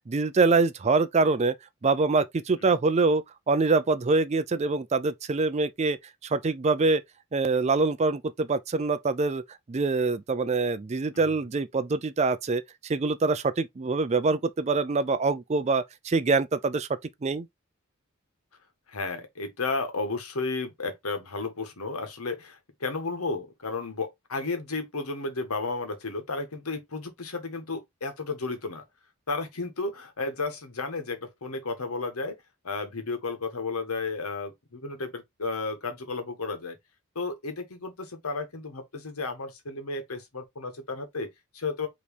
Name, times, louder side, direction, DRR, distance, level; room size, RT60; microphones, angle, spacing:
voice 1, 0.1-1.6 1.8-7.0 7.3-17.5, right 3 dB, 30° right, 0.4 m, -25 dB
voice 2, 18.9-28.8 29.3-32.4 32.6-36.8 37.1-41.9, left 3 dB, 85° left, 1.4 m, -33 dB
5.2 x 3.1 x 3.3 m
head